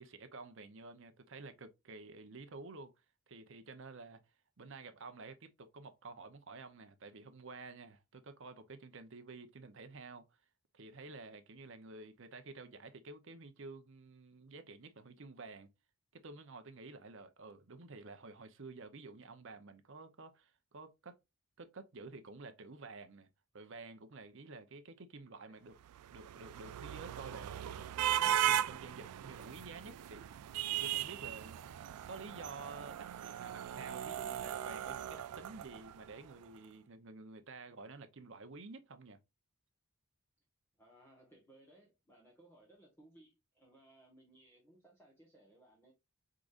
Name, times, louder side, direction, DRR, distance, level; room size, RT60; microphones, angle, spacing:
voice 1, 0.0-2.9 3.3-4.2 4.6-10.2 10.7-15.7 16.1-21.2 21.6-23.3 23.5-25.7 26.1-30.3 30.7-31.6 32.1-39.2, right 3 dB, 55° right, 0.7 m, -51 dB
sound 1, 25.9-36.2, right 11 dB, 90° right, 0.3 m, -38 dB
voice 2, 40.8-45.9, right 1 dB, 10° left, 1.3 m, -63 dB
4.9 x 3.7 x 2.4 m
head